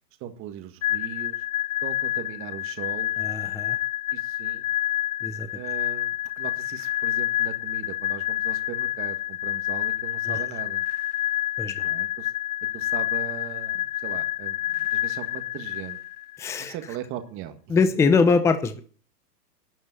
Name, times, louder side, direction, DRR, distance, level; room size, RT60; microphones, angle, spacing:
voice 1, 0.2-1.4 1.8-3.1 4.1-4.7 5.5-10.9 11.8-12.3 12.7-16.0 16.6-17.6, right 10 dB, 25° right, 8 dB, 1.6 m, -39 dB
sound 1, 0.8-16.4, left 14 dB, 65° left, 0.5 m, -28 dB
voice 2, 3.2-3.8 5.2-5.5 10.3-10.4 11.6-11.9 16.4-16.7 17.7-18.8, left 4 dB, 5° left, 9 dB, 0.7 m, -23 dB
12.5 x 7.2 x 9.3 m, 0.40 s
hypercardioid pair, 140°, 48 cm